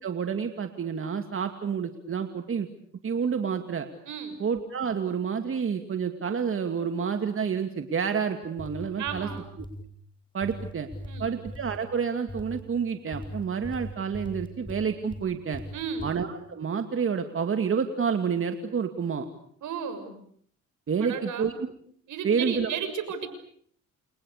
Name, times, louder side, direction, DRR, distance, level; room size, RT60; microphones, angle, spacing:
voice 1, 0.0-2.7 3.0-3.9 4.4-9.3 10.3-10.9 11.2-15.6 16.0-19.3 20.9-21.7 22.2-22.7, right 6 dB, 45° right, 6 dB, 2.6 m, -29 dB
voice 2, 4.0-4.4 9.0-9.5 11.0-11.3 15.7-16.2 19.6-20.2 21.0-21.5 22.1-23.3, right 6 dB, 75° right, 10 dB, 6.7 m, -34 dB
sound 1, 8.4-9.9 10.4-11.8 12.3-12.6 13.1-15.2 15.5-16.1, left 1 dB, 15° left, 6.8 m, -39 dB
29.5 x 29.0 x 6.8 m, 0.63 s
cardioid pair, 90°, 30 cm